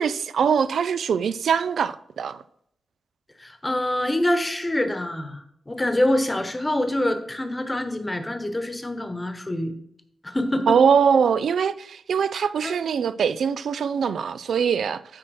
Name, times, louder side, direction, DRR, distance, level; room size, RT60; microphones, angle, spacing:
voice 1, 0.0-2.4 10.7-15.2, right 7 dB, 90° right, 0.4 m, -22 dB
voice 2, 3.4-9.7 10.2-10.8 12.6-12.8, left 1 dB, 15° left, 1.0 m, -25 dB
9.0 x 4.4 x 6.3 m
wide cardioid pair, 165°, 0 cm